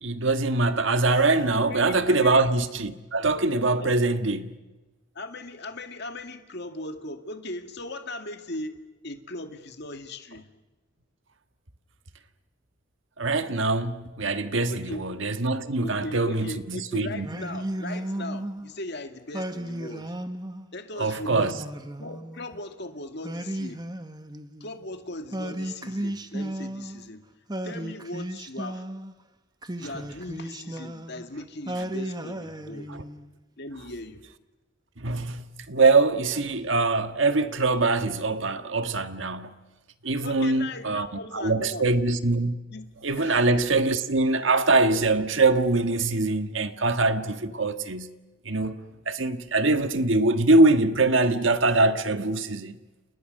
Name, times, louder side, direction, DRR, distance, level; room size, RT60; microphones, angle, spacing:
voice 1, 0.0-4.5 13.2-17.4 21.0-21.5 32.9-33.0 35.0-39.6 40.0-41.1 41.3-42.5 43.0-48.1 48.4-48.8 49.1-52.7, right 3 dB, 65° right, 1.6 m, -23 dB
voice 2, 1.6-2.4 3.8-4.1 5.1-10.5 14.7-15.0 15.8-20.2 20.7-21.6 22.0-23.8 24.6-27.2 27.6-28.8 29.8-33.0 33.6-34.2 40.2-41.9 42.7-42.9 43.2-43.8, left 2 dB, 55° left, 2.0 m, -38 dB
Singing, 17.2-18.7 19.3-20.7 21.3-22.6 23.2-24.8 25.3-27.1 27.5-29.1 29.6-31.3 31.7-33.3, right 1 dB, 20° right, 1.2 m, -34 dB
30.0 x 29.0 x 6.6 m
head